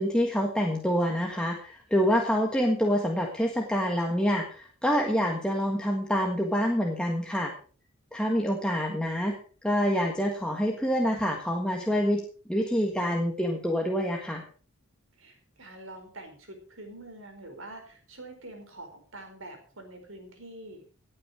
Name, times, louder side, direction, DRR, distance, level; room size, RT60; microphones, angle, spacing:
voice 1, 0.0-7.5 8.1-9.3 9.6-12.2 12.5-14.4, equal, 5° left, 0 dB, 1.6 m, -26 dB
voice 2, 15.1-20.8, right 1 dB, 70° right, 5 dB, 4.7 m, -45 dB
17.5 x 8.7 x 4.9 m, 0.41 s
head